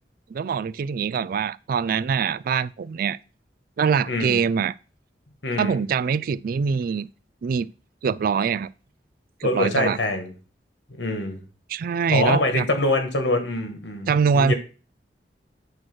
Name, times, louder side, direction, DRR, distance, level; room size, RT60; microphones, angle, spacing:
voice 1, 0.3-3.2 3.8-4.7 5.6-7.1 7.4-7.7 8.0-8.7 9.4-10.0 11.7-12.7 14.1-14.5, right 6 dB, 55° right, 0.3 m, -23 dB
voice 2, 4.1-4.4 5.4-5.8 9.4-10.3 11.0-11.4 12.1-14.5, left 2 dB, 85° left, 1.8 m, -24 dB
8.5 x 3.1 x 6.2 m
head